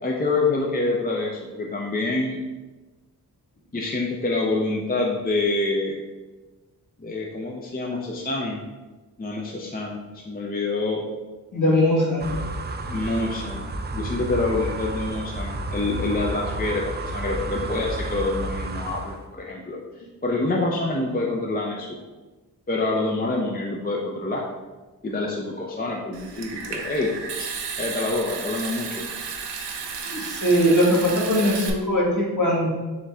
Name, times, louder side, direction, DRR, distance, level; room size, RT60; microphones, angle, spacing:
voice 1, 0.0-2.4 3.7-6.0 7.0-8.6 9.2-11.0 12.9-19.8 20.2-22.0 22.7-24.5 25.0-27.1 27.4-27.5 27.8-29.1, left 2 dB, 25° left, -1 dB, 0.5 m, -26 dB
voice 2, 11.5-12.4 30.0-32.7, equal, 50° left, -4 dB, 1.5 m, -21 dB
sound 1, 12.2-19.3, right 1 dB, 25° right, 0.4 m, -31 dB
Water tap faucet / Sink (filling or washing) / Trickle dribble, 26.1-31.7, right 5 dB, 85° right, 0.6 m, -33 dB
4.0 x 3.1 x 3.5 m, 1.2 s
cardioid pair, 45°, 40 cm